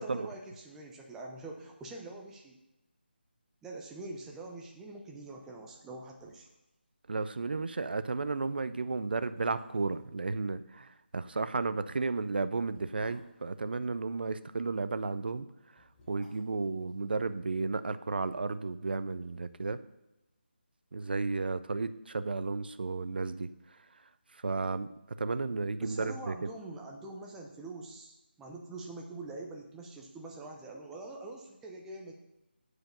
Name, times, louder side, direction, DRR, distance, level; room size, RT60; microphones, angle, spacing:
voice 1, 0.0-2.6 3.6-6.5 25.8-32.1, right 2 dB, 5° right, 0 dB, 0.6 m, -44 dB
sound 1, 6.1-6.8 7.0-7.1 7.5-7.7 8.4-8.5 9.1-10.1 11.6-14.3 15.5-17.8 18.0-18.1, equal, 15° left, 3.3 m, -60 dB
voice 2, 7.1-15.5 15.8-19.8 20.9-23.5 24.3-26.5, right 3 dB, 60° right, 13 dB, 0.5 m, -33 dB
7.7 x 4.8 x 6.5 m, 0.95 s
figure-of-eight pair, 160°, 6 cm